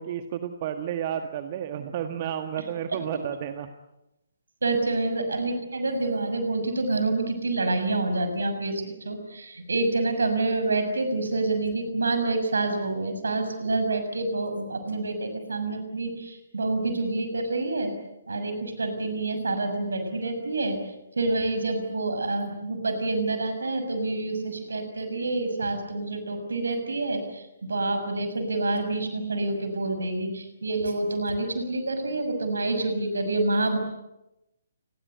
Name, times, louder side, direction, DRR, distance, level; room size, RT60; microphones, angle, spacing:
voice 1, 0.0-3.7, right 9 dB, 35° right, 7 dB, 1.6 m, -31 dB
voice 2, 4.6-17.9 18.3-20.8 21.2-33.8, right 2 dB, 65° right, 8 dB, 6.5 m, -27 dB
29.5 x 21.5 x 8.2 m, 0.91 s
figure-of-eight pair, 135°, 0 cm